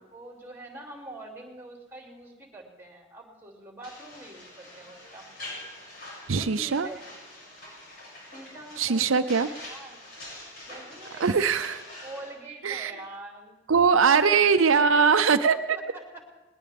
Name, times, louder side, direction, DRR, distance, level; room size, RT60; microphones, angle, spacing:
voice 1, 0.1-5.3 6.3-7.0 8.3-10.0 10.7-11.7 12.0-13.6 14.9-15.0 15.9-16.4, right 1 dB, 10° right, 0 dB, 3.0 m, -45 dB
sound 1, 3.8-12.3, left 1 dB, 50° left, 7.1 m, -45 dB
voice 2, 6.3-6.9 8.8-9.5 11.2-11.8 12.6-12.9 13.7-15.8, right 5 dB, 90° right, 10 dB, 0.6 m, -21 dB
20.0 x 19.5 x 3.6 m, 1.1 s
head